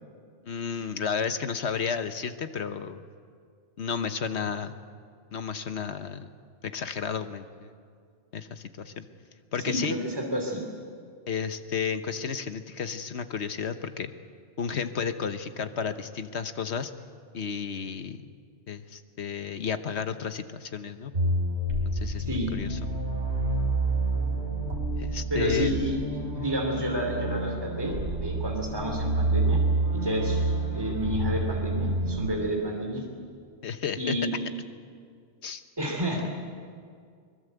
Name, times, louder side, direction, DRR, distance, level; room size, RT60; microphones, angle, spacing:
voice 1, 0.4-3.0 3.8-4.8 5.3-6.3 6.6-7.7 8.3-9.1 9.5-10.0 11.3-14.1 14.6-16.9 17.3-18.3 18.7-21.1 21.9-22.8 25.0-25.7 33.6-34.2 35.4-35.6 36.1-36.3, left 6 dB, 75° left, 10 dB, 1.3 m, -32 dB
voice 2, 9.7-10.6 22.3-22.5 25.3-25.9 26.3-29.6 29.9-33.0 34.0-34.4 35.8-36.3, right 1 dB, 20° right, 1 dB, 2.9 m, -30 dB
sound 1, 21.1-32.3, right 2 dB, 80° right, 3.6 m, -28 dB
23.5 x 21.5 x 8.0 m, 2.1 s
omnidirectional pair, 1.2 m